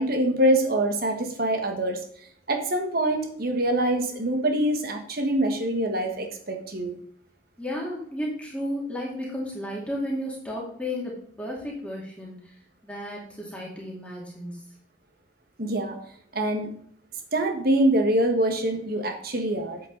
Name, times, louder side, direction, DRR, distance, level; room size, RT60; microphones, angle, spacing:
voice 1, 0.0-2.0 2.5-7.0 15.6-16.0 16.3-16.7 17.3-19.8, right 1 dB, 50° right, 5 dB, 1.5 m, -24 dB
voice 2, 7.6-12.5 12.8-14.6, left 1 dB, 5° left, -4 dB, 2.2 m, -33 dB
8.6 x 7.8 x 3.9 m, 0.62 s
head